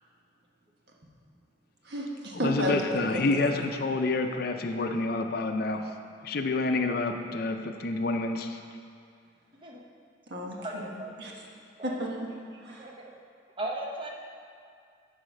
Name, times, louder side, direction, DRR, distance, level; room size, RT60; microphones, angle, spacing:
voice 1, 1.8-2.7 3.1-3.5 10.3-10.6 11.2-11.3 11.8-12.3 12.6-12.9, right 1 dB, 65° right, -2 dB, 1.2 m, -32 dB
voice 2, 2.4-5.8 6.2-8.6, left 3 dB, 55° left, 5 dB, 0.5 m, -28 dB
voice 3, 10.6-11.4 11.8-12.0 12.7-13.2 13.6-14.1, right 1 dB, 30° right, -1 dB, 0.9 m, -37 dB
11.0 x 4.1 x 5.3 m, 2.3 s
head